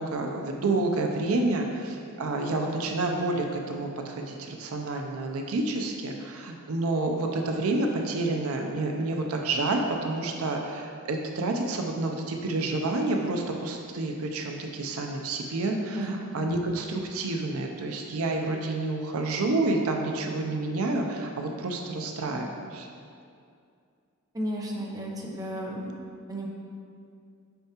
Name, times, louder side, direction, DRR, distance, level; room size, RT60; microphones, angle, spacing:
voice 1, 0.0-22.9, right 2 dB, 80° right, 2 dB, 0.5 m, -29 dB
voice 2, 24.3-26.0 26.3-26.5, right 1 dB, 15° right, -2 dB, 0.7 m, -33 dB
6.8 x 5.5 x 2.9 m, 2.4 s
head